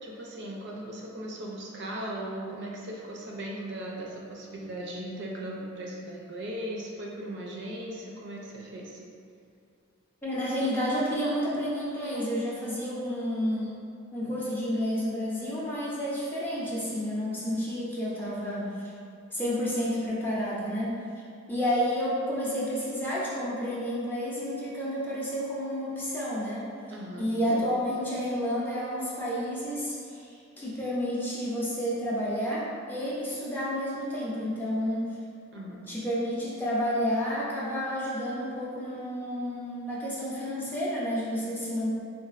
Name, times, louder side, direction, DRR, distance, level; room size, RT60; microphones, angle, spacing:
voice 1, 0.0-9.0 26.9-27.3 35.5-35.9, right 1 dB, 55° right, -2 dB, 0.4 m, -38 dB
voice 2, 10.2-13.8 14.1-18.9 19.3-20.9 21.5-26.7 27.2-35.0 35.9-41.9, equal, 10° left, -7 dB, 0.5 m, -30 dB
3.9 x 2.4 x 2.4 m, 2.4 s
head